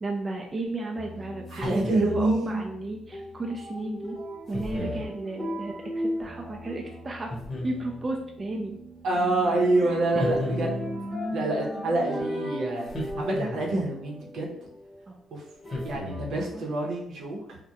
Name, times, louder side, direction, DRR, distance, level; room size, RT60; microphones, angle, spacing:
voice 1, 0.0-4.2 4.5-7.3 7.6-8.8 10.1-10.2 15.1-15.2 16.5-16.7, right 2 dB, 30° right, 1 dB, 0.3 m, -33 dB
sound 1, 0.9-15.0 15.6-16.7, equal, 5° left, 0.7 m, -37 dB
sound 2, 1.5-2.3 4.5-5.1 7.3-8.1 10.2-11.1 12.9-13.9 15.7-16.5, left 1 dB, 40° left, 0.8 m, -34 dB
voice 2, 1.5-2.6 9.0-10.7 11.3-14.5 15.3-15.4 15.8-17.6, right 2 dB, 70° right, -2 dB, 0.7 m, -27 dB
2.3 x 2.1 x 2.8 m, 0.74 s
cardioid pair, 90°, 0 cm